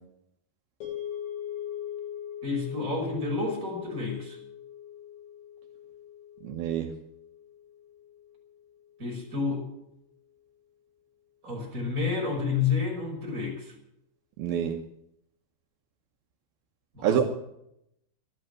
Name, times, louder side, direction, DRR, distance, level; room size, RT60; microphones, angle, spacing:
sound 1, 0.8-9.1, left 10 dB, 65° left, 9.2 m, -41 dB
voice 1, 2.4-4.4 9.0-9.6 11.4-13.7 16.9-17.3, left 4 dB, 15° right, -2 dB, 5.4 m, -30 dB
voice 2, 6.4-7.0 14.4-14.8 17.0-17.3, right 9 dB, 80° right, 3 dB, 2.2 m, -27 dB
13.5 x 12.0 x 7.7 m, 0.78 s
omnidirectional pair, 5.9 m